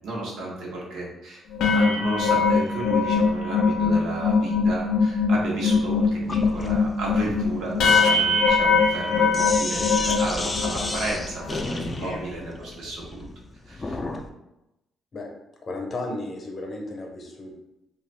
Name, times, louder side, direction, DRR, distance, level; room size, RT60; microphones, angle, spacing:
voice 1, 0.0-1.4 1.7-13.3 13.7-14.0, right 2 dB, 85° right, -3 dB, 0.9 m, -33 dB
sound 1, 1.5-11.0 11.4-11.6 11.9-12.2, left 4 dB, 85° left, 0.5 m, -22 dB
Sink (filling or washing), 6.3-14.3, left 2 dB, 25° left, 0.3 m, -33 dB
voice 2, 15.6-17.5, left 2 dB, 45° left, 1 dB, 0.7 m, -34 dB
2.5 x 2.4 x 3.2 m, 0.90 s
cardioid pair, 90°, 0 cm